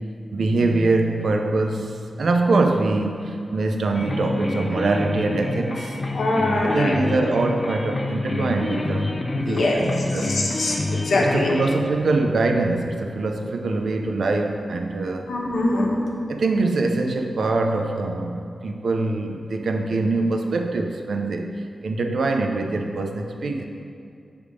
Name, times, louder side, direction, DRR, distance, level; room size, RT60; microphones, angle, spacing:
voice 1, 0.3-6.2 6.6-10.4 11.2-15.3 16.3-23.7, right 3 dB, 75° right, 4 dB, 0.5 m, -24 dB
sound 1, 3.9-11.8, left 2 dB, 35° left, 0.5 m, -28 dB
voice 2, 6.1-6.9 9.5-9.8 10.1-10.8 11.0-11.6 15.3-15.9, left 2 dB, 85° left, -2 dB, 1.1 m, -22 dB
7.9 x 3.5 x 5.0 m, 2.4 s
wide cardioid pair, 125°, 0 cm